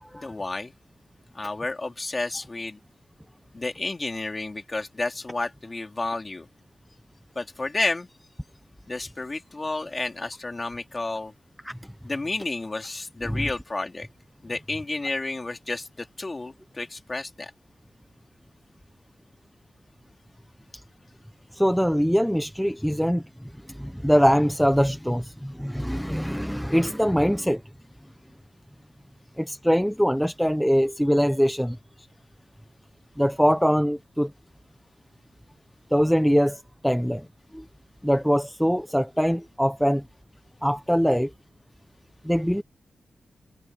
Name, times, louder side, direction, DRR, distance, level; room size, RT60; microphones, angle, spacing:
voice 1, 0.1-0.7 1.3-2.8 3.5-6.5 7.4-8.1 8.9-11.3 12.0-14.1 14.4-17.5, left 2 dB, 25° left, 3.5 m, -31 dB
voice 2, 21.5-23.2 23.7-27.6 29.4-31.8 33.2-34.3 35.9-37.3 37.5-37.6 38.0-40.0 40.6-41.3 42.2-42.6, equal, ahead, 0.6 m, -23 dB
wide cardioid pair, 160°, 0 cm